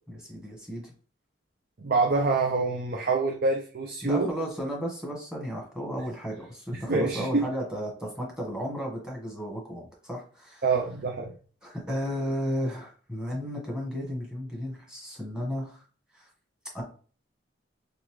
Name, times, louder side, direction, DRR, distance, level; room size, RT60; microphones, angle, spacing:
voice 1, 0.1-0.9 4.0-10.7 11.6-15.8 16.1-16.3 16.7-16.8, equal, 5° right, 1.4 m, -34 dB
voice 2, 1.8-4.3 6.9-7.4 10.6-11.3, right 3 dB, 55° right, 0.6 m, -26 dB
4.0 x 3.2 x 3.2 m
head